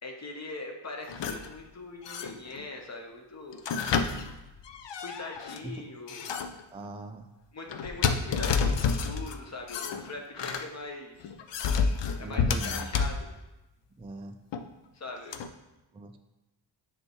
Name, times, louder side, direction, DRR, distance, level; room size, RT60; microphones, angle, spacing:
voice 1, 0.0-3.6 5.0-6.3 7.5-11.3 12.2-13.2 14.9-15.4, left 3 dB, 35° left, 2 dB, 1.0 m, -41 dB
sound 1, 1.1-1.5 2.0-2.6 3.5-5.6 6.1-6.6 7.7-9.4 9.7-10.7 11.2-13.2 14.5-14.6 15.3-15.5, left 5 dB, 65° left, 0.6 m, -29 dB
voice 2, 6.7-7.3 12.2-12.9 14.0-14.4 15.9-16.2, right 2 dB, 15° right, 5 dB, 0.3 m, -40 dB
9.5 x 3.3 x 3.1 m, 1.0 s
wide cardioid pair, 95°, 45 cm